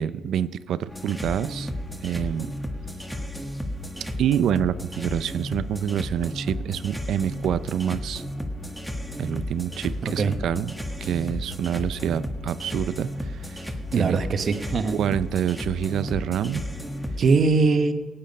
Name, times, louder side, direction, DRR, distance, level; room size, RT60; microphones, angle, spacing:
voice 1, 0.0-1.7 2.0-2.5 4.2-8.2 9.2-10.7 11.0-13.7 14.0-14.2 14.9-16.6, right 9 dB, 75° right, 15 dB, 0.5 m, -27 dB
sound 1, 0.9-17.3, equal, 5° left, 1.5 m, -33 dB
voice 2, 10.0-10.3 13.9-15.0 17.2-17.9, right 4 dB, 50° right, 8 dB, 1.1 m, -21 dB
18.0 x 8.7 x 5.4 m, 1.3 s
cardioid pair, 90°, 0 cm